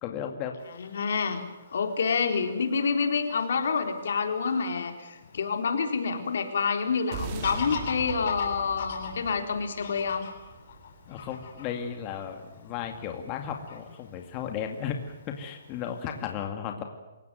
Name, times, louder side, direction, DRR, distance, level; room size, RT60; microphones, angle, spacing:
voice 1, 0.0-0.6 11.1-15.0 15.3-16.8, left 8 dB, 25° left, 4 dB, 2.2 m, -35 dB
Fowl / Bird vocalization bird call bird song, 0.6-16.3, left 6 dB, 50° left, 7.4 m, -44 dB
voice 2, 0.8-1.4 1.7-10.3, left 5 dB, 70° left, 6 dB, 4.1 m, -28 dB
sound 1, 7.1-11.6, right 5 dB, 30° right, 3.6 m, -40 dB
28.0 x 17.5 x 9.3 m, 1.1 s
hypercardioid pair, 165°, 0 cm